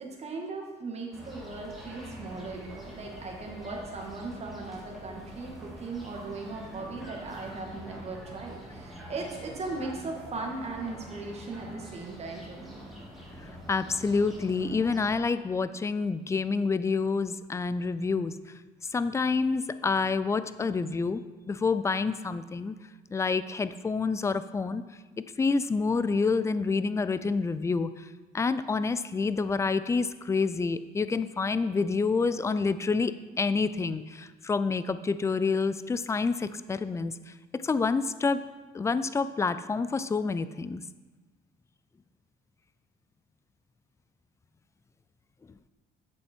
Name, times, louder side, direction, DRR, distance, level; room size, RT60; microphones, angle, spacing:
voice 1, 0.0-12.8, right 3 dB, 40° right, 1 dB, 1.8 m, -38 dB
sound 1, 1.1-15.2, equal, ahead, 2.4 m, -46 dB
voice 2, 13.7-18.3 18.9-21.2 21.5-22.7 23.1-24.8 25.4-27.9 28.3-37.1 37.6-38.4 38.7-40.8, left 4 dB, 15° left, 13 dB, 0.4 m, -28 dB
8.3 x 6.6 x 4.5 m, 1.3 s
cardioid pair, 110°, 17 cm